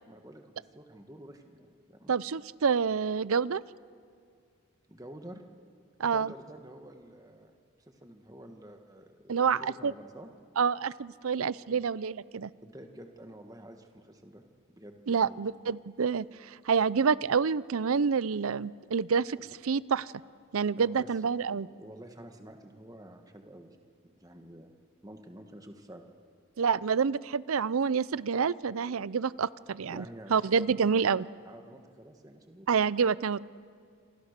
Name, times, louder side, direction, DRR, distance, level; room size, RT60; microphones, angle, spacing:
voice 1, 0.1-2.1 4.9-5.4 6.0-7.5 7.9-10.3 11.7-11.8 12.6-15.4 19.4-19.5 20.8-21.1 21.5-23.8 24.0-24.7 25.0-26.1 29.9-30.8 31.4-32.7, right 1 dB, 15° right, 5 dB, 1.5 m, -49 dB
voice 2, 2.1-3.6 6.0-6.3 9.3-9.9 10.6-12.5 15.1-19.4 19.6-20.1 20.5-21.7 26.6-30.0 30.3-31.3 32.7-33.4, right 6 dB, 80° right, 19 dB, 0.5 m, -28 dB
27.5 x 26.5 x 6.7 m, 2.2 s
head